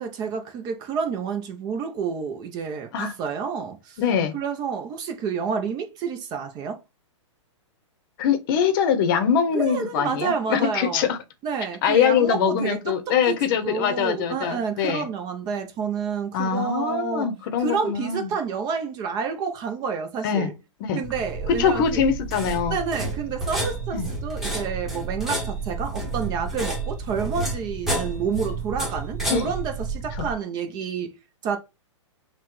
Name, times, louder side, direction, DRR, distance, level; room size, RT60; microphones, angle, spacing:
voice 1, 0.0-4.0 4.3-6.8 9.5-11.1 11.4-17.3 17.6-20.5 20.9-22.0 22.7-31.2 31.4-31.6, right 6 dB, 25° right, 0.6 m, -29 dB
voice 2, 4.0-4.3 8.2-11.2 11.8-15.1 16.3-18.3 20.2-20.5 20.9-21.0 21.6-22.8 23.9-24.1 29.3-29.5 30.2-30.3, left 7 dB, 45° left, 0.8 m, -23 dB
sound 1, 21.0-30.3, right 3 dB, ahead, 1.1 m, -30 dB
5.7 x 2.2 x 3.1 m
hypercardioid pair, 140°, 16 cm